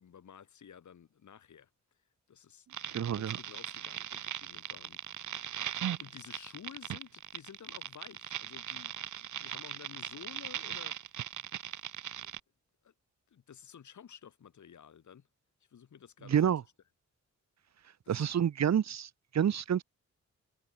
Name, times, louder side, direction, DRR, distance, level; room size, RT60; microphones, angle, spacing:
voice 1, 0.0-1.7 2.3-5.0 5.3-10.9 12.1-12.3 12.8-12.9 13.3-15.3 15.7-16.5 18.0-18.3, left 8 dB, 75° left, 6.3 m, -53 dB
sound 1, 2.7-12.4, right 10 dB, 90° right, 1.1 m, -39 dB
voice 2, 2.9-3.4 16.3-16.6 18.1-19.8, right 9 dB, 65° right, 1.2 m, -28 dB
wide cardioid pair, 140°, 29 cm